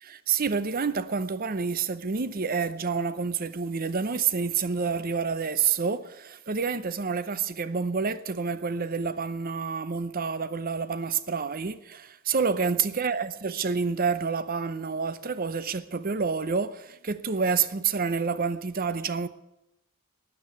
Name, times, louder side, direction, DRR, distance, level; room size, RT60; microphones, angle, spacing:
voice 1, 0.0-19.3, right 5 dB, 40° right, 0.7 m, -28 dB
12.0 x 10.0 x 9.4 m
head